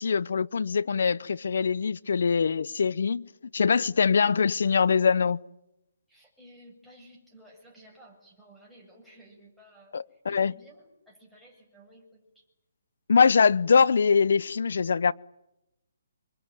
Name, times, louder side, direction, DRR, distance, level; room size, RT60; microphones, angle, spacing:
voice 1, 0.0-3.2 3.5-5.4 9.9-10.5 13.1-15.1, left 5 dB, 70° left, 0.9 m, -23 dB
voice 2, 6.1-12.5, right 1 dB, ahead, 7.5 m, -54 dB
27.0 x 23.0 x 9.2 m
hypercardioid pair, 155°, 0 cm